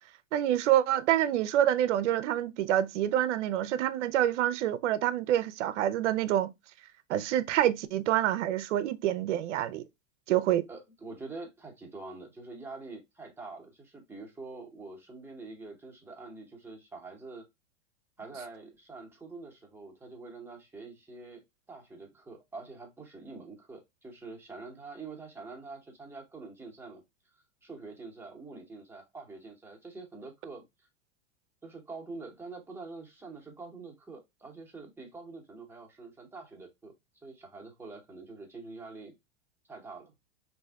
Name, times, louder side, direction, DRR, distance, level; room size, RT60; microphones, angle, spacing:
voice 1, 0.3-6.5 7.1-9.8 10.3-10.6, right 12 dB, 70° right, 0.5 m, -27 dB
voice 2, 10.7-17.5 18.2-21.4 21.7-27.0 27.6-30.6 31.6-36.9 37.2-39.1 39.7-40.1, right 3 dB, 5° right, 0.8 m, -45 dB
3.3 x 2.7 x 2.3 m
hypercardioid pair, 110°, 37 cm